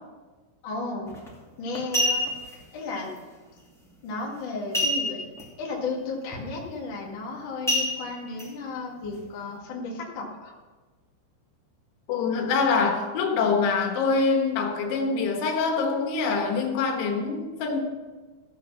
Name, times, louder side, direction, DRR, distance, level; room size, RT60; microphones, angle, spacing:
voice 1, 0.6-1.1 1.6-2.2 2.7-3.1 4.0-5.3 5.6-10.5, left 3 dB, 45° left, -3 dB, 1.7 m, -34 dB
sound 1, 1.1-1.3 1.7-2.5 4.7-5.4 5.7-5.8 6.3-6.6 7.7-8.5 9.0-9.1, left 1 dB, ahead, 0.9 m, -26 dB
voice 2, 12.1-17.8, left 4 dB, 85° left, 3 dB, 3.7 m, -25 dB
14.5 x 6.7 x 5.8 m, 1.3 s
omnidirectional pair, 5.3 m